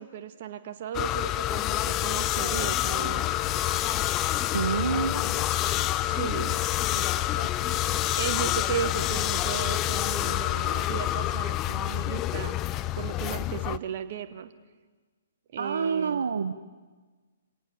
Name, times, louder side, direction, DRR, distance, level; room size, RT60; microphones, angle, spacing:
voice 1, 0.0-3.3 5.0-5.2 6.0-6.6 8.2-12.6 13.0-14.5 15.5-16.2, right 9 dB, 45° right, 8 dB, 1.9 m, -35 dB
sound 1, 0.9-13.8, left 14 dB, 25° left, 0.7 m, -27 dB
voice 2, 4.5-5.2 6.9-7.5 15.6-16.5, right 6 dB, 65° right, 9 dB, 1.1 m, -28 dB
28.5 x 18.0 x 7.3 m, 1.3 s
figure-of-eight pair, 125°, 0 cm